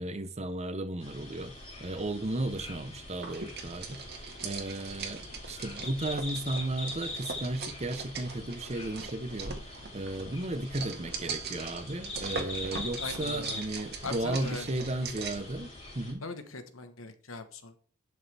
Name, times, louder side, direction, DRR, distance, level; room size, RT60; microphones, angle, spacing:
voice 1, 0.0-9.6 9.9-16.2, right 2 dB, 30° right, 0.9 m, -35 dB
sound 1, 1.0-16.1, left 2 dB, 35° left, 3.8 m, -43 dB
sound 2, 3.2-15.5, right 4 dB, 50° right, 1.7 m, -41 dB
voice 2, 13.0-13.6 14.0-14.7 16.2-17.8, left 3 dB, 75° left, 1.2 m, -40 dB
11.0 x 6.5 x 3.4 m
head